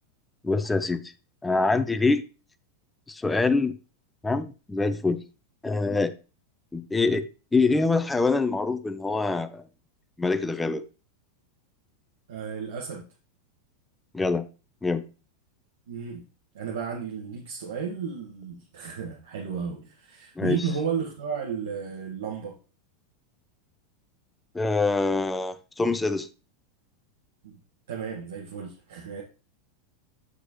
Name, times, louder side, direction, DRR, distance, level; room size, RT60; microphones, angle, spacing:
voice 1, 0.4-1.1 1.4-2.2 3.1-3.8 4.2-5.2 5.6-6.1 6.7-7.3 7.5-9.6 10.2-10.8 14.1-14.5 14.8-15.1 20.4-20.6 24.5-26.3, left 3 dB, 10° left, 0.7 m, -25 dB
voice 2, 12.3-13.1 15.9-16.2 16.5-22.6 27.4-27.6 27.9-29.2, right 6 dB, 85° right, 1.6 m, -33 dB
8.2 x 6.3 x 3.0 m
hypercardioid pair, 115°, 0 cm